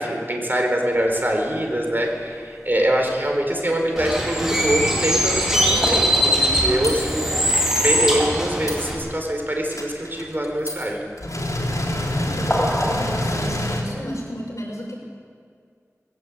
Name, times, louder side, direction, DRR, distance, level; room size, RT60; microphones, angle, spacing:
voice 1, 0.0-7.3 7.8-11.1, right 1 dB, 35° right, 2 dB, 4.4 m, -24 dB
Bird, 4.0-9.0, equal, 10° right, 5.2 m, -21 dB
sound 1, 5.8-6.5 6.8-7.1 7.5-8.3 8.7-9.0 9.3-9.4 9.7-10.9 11.2-13.8, left 1 dB, 85° left, 3.7 m, -27 dB
sound 2, 5.8-8.1 8.4-8.5 8.8-9.0 12.5-13.5, equal, 10° left, 6.4 m, -29 dB
voice 2, 12.2-15.0, equal, 65° left, -2 dB, 5.9 m, -32 dB
20.0 x 17.5 x 8.6 m, 2.2 s
wide cardioid pair, 45°, 6 cm